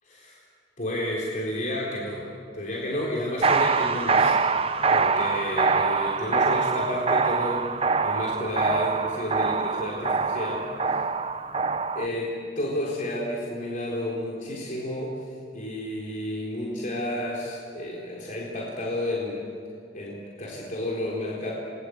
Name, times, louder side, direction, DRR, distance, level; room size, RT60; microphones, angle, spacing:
voice 1, 0.0-0.4 0.8-2.3 2.5-7.7 8.0-11.0 12.0-19.4 19.9-21.5, left 1 dB, 45° left, -4 dB, 4.0 m, -31 dB
sound 1, 3.4-12.1, right 4 dB, 30° right, 0.7 m, -24 dB
28.5 x 22.0 x 8.0 m, 2.4 s
head